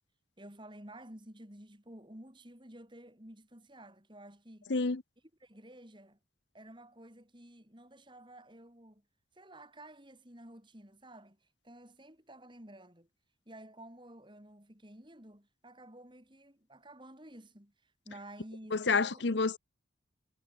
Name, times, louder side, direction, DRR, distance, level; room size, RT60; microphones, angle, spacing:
voice 1, 0.4-4.7 5.4-6.2 6.5-9.0 9.3-13.1 13.4-19.4, right 1 dB, 25° right, 5.0 m, -52 dB
voice 2, 4.7-5.0 18.7-19.6, left 4 dB, 65° left, 0.8 m, -29 dB
head